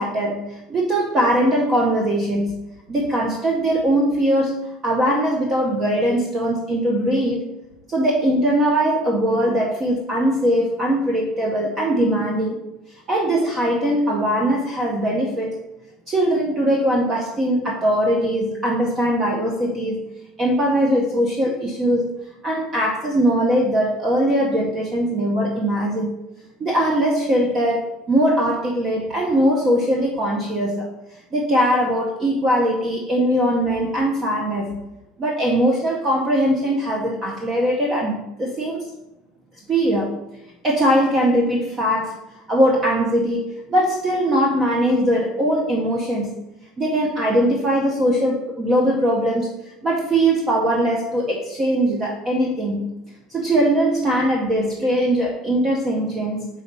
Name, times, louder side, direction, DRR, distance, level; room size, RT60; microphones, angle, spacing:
voice 1, 0.0-2.5 2.9-4.6 4.8-7.4 7.9-12.6 13.1-15.6 16.1-20.0 20.4-22.1 22.4-26.1 26.6-30.9 31.3-34.8 35.2-38.9 39.7-40.2 40.6-42.1 42.5-46.3 46.8-49.5 49.8-52.9 53.3-56.5, right 1 dB, 20° right, -2 dB, 0.7 m, -20 dB
4.9 x 4.0 x 5.4 m, 0.92 s
cardioid pair, 180°, 0 cm